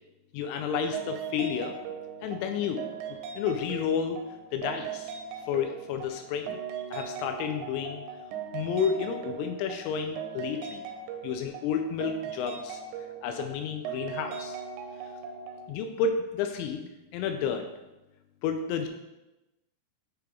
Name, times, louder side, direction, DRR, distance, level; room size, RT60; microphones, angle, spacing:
voice 1, 0.3-1.8 2.2-2.8 3.4-4.2 4.5-5.1 5.5-6.6 6.9-8.0 8.5-10.8 11.2-12.8 13.2-14.6 15.7-16.9 17.1-17.7 18.4-18.9, left 6 dB, 85° left, 5 dB, 2.7 m, -31 dB
sound 1, 0.9-15.7, right 7 dB, 85° right, 2.5 m, -39 dB
8.7 x 3.3 x 4.6 m, 1.0 s
omnidirectional pair, 5.7 m